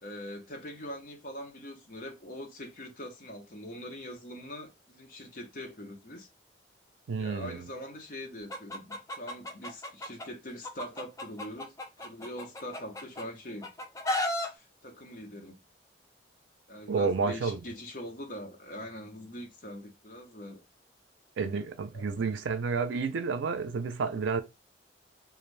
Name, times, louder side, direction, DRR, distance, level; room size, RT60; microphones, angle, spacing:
voice 1, 0.0-6.3 7.2-11.7 12.0-13.7 14.4-15.6 16.7-20.6 21.9-22.1, left 1 dB, 45° left, 0.8 m, -43 dB
voice 2, 7.1-7.7 16.9-17.6 21.4-24.4, right 5 dB, 85° right, 0.4 m, -30 dB
Chicken rooster, 8.5-10.3 10.6-13.2 13.6-14.5, left 1 dB, 15° left, 0.4 m, -34 dB
2.6 x 2.4 x 3.2 m
head